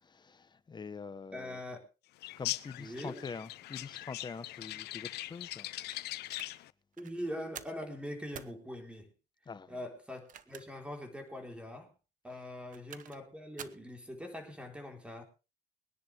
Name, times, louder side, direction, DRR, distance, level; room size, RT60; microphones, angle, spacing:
voice 1, 0.0-1.6 2.4-5.7 9.5-9.8, left 5 dB, 25° left, 1.0 m, -45 dB
voice 2, 1.3-1.8 2.8-3.2 7.0-9.1 9.7-11.9 12.2-15.2, equal, 5° right, 3.9 m, -42 dB
sound 1, 2.2-6.7, left 16 dB, 75° left, 0.7 m, -41 dB
sound 2, 5.9-6.5 6.9-7.1 7.5-7.8 8.3-8.6 10.1-10.9 11.3-11.4 12.5-13.2 13.6-13.9, right 9 dB, 50° right, 1.0 m, -48 dB
22.5 x 10.5 x 3.4 m
cardioid pair, 110°, 17 cm